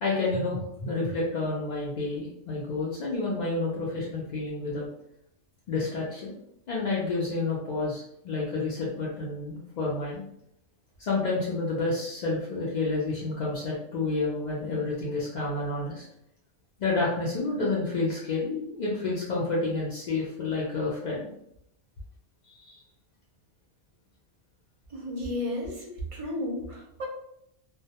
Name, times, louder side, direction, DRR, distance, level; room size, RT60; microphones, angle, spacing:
voice 1, 0.0-4.9 5.7-6.3 6.7-10.2 11.0-16.0 16.8-21.3 22.4-22.8, left 3 dB, 65° left, -6 dB, 0.4 m, -29 dB
voice 2, 24.9-27.1, left 1 dB, 40° right, -3 dB, 0.5 m, -33 dB
2.2 x 2.1 x 2.7 m, 0.75 s
omnidirectional pair, 1.3 m